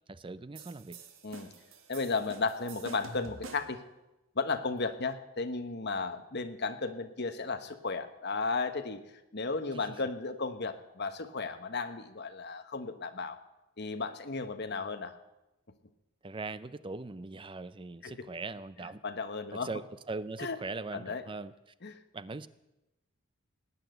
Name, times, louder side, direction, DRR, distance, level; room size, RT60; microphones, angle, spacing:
voice 1, 0.1-1.0 9.7-10.0 16.2-19.0 19.5-21.5 22.1-22.5, right 3 dB, 25° right, 15 dB, 0.4 m, -40 dB
sound 1, 0.6-3.9, right 3 dB, 60° right, 1.7 m, -48 dB
voice 2, 1.9-3.8 4.3-9.0 9.3-13.4 13.8-15.1 18.0-18.1 19.0-19.7 20.4-20.6 20.9-21.2 21.8-21.9, left 4 dB, 50° left, 9 dB, 1.2 m, -34 dB
18.5 x 9.1 x 7.9 m, 0.97 s
head